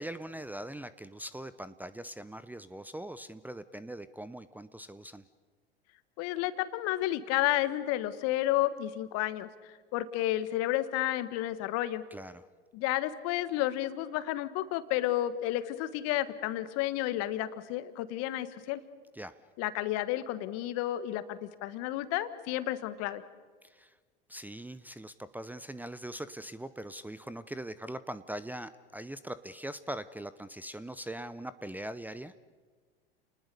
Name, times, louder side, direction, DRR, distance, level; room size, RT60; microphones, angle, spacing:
voice 1, 0.0-5.2 12.1-12.4 19.1-19.3 23.6-23.9 24.3-32.3, right 1 dB, 5° right, 14 dB, 0.8 m, -41 dB
voice 2, 6.2-12.0 12.7-18.8 19.6-23.2, left 14 dB, 55° left, 13 dB, 1.6 m, -31 dB
30.0 x 19.5 x 6.8 m, 1.5 s
hypercardioid pair, 85°, 30 cm